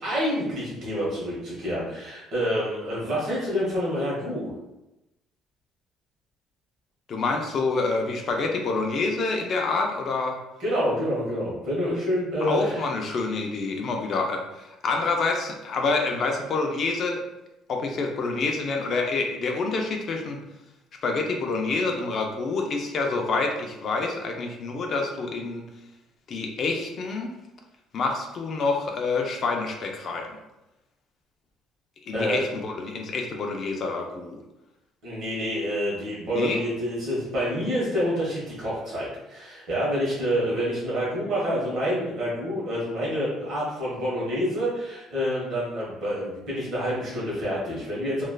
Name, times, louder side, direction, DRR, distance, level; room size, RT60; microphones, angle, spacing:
voice 1, 0.0-4.5 10.6-12.8 32.1-32.4 35.0-48.2, equal, 50° right, -7 dB, 1.2 m, -27 dB
voice 2, 7.1-10.4 12.4-17.2 17.7-20.4 21.0-25.7 26.3-27.3 27.9-30.3 32.1-34.4 36.4-36.6, left 3 dB, 40° left, 2 dB, 0.4 m, -27 dB
3.2 x 2.3 x 2.3 m, 0.95 s
cardioid pair, 155°, 0 cm